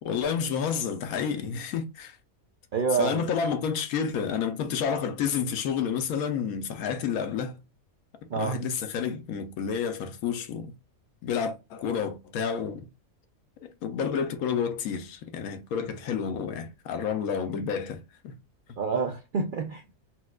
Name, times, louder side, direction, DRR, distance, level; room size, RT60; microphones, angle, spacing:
voice 1, 0.0-2.2 3.0-7.6 8.3-10.7 11.2-12.9 13.6-18.3, left 7 dB, 80° left, 1.0 m, -30 dB
voice 2, 2.7-3.3 8.3-8.6 18.8-19.9, right 5 dB, 75° right, 0.4 m, -28 dB
4.4 x 2.2 x 2.2 m
omnidirectional pair, 1.5 m